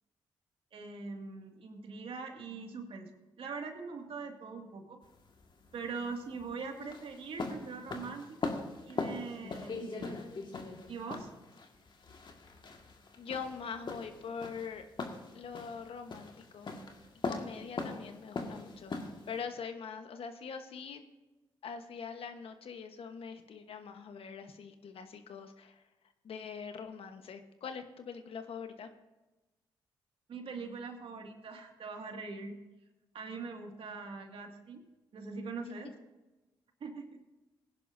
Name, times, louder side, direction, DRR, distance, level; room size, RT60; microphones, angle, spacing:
voice 1, 0.7-3.1 3.4-5.0 5.7-8.4 8.8-10.2 10.9-11.3 30.3-32.6 33.1-34.8 35.1-35.9 36.8-37.2, right 4 dB, 65° right, 3 dB, 2.2 m, -42 dB
sound 1, 5.0-19.4, left 3 dB, 50° left, 1.9 m, -41 dB
voice 2, 13.2-14.8 15.3-16.7 17.2-18.9 19.3-21.0 21.6-25.8 26.2-28.9 35.6-35.8, left 6 dB, 65° left, 7 dB, 1.3 m, -43 dB
19.0 x 10.5 x 2.7 m, 1.1 s
supercardioid pair, 50°, 10 cm